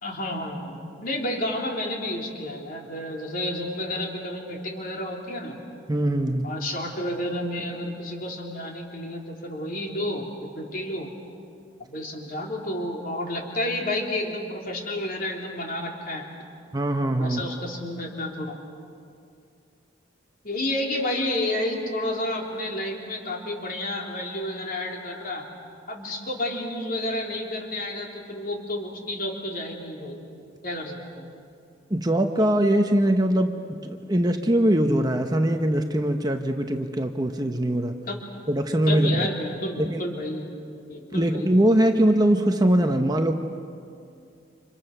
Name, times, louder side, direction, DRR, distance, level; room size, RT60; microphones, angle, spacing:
voice 1, 0.0-5.6 6.4-11.1 11.9-16.3 17.2-18.6 20.4-25.5 25.9-30.2 30.6-31.3 38.1-38.2 38.9-40.5 40.9-41.5, left 1 dB, 45° left, 0 dB, 3.6 m, -30 dB
voice 2, 5.9-6.5 16.7-17.4 31.9-37.9 38.5-39.3 39.8-40.0 41.1-43.3, right 1 dB, 20° right, 5 dB, 1.0 m, -22 dB
30.0 x 26.5 x 6.7 m, 2.4 s
head